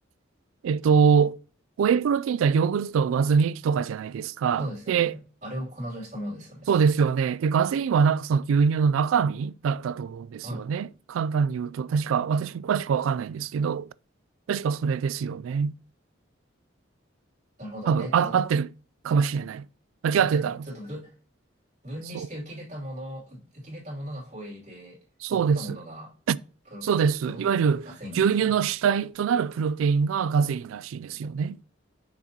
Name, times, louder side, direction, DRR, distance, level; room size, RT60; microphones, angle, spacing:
voice 1, 0.6-1.4 1.8-5.1 6.7-13.9 14.5-15.7 17.9-18.7 19.0-19.7 20.0-20.6 22.1-22.3 25.2-25.8 26.3-26.4 26.8-27.9 28.2-31.6, right 6 dB, 90° right, 0.3 m, -24 dB
voice 2, 4.6-6.7 10.4-10.6 17.6-18.4 20.1-21.1 21.8-25.0 25.3-26.1 26.7-26.9 27.3-28.3, equal, 35° right, 2.8 m, -38 dB
7.1 x 6.1 x 2.8 m
head